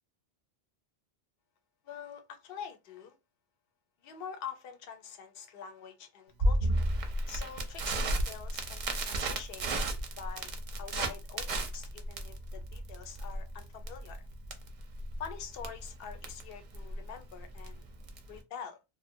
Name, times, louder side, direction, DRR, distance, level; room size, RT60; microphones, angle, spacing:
voice 1, 1.8-3.1 4.0-6.9 7.3-9.8 10.2-10.5 10.8-14.3 15.2-17.8 18.3-18.8, left 7 dB, 70° left, 0.8 m, -45 dB
Crackle, 6.4-18.4, right 1 dB, 55° right, 0.6 m, -33 dB
2.5 x 2.1 x 2.6 m
omnidirectional pair, 1.0 m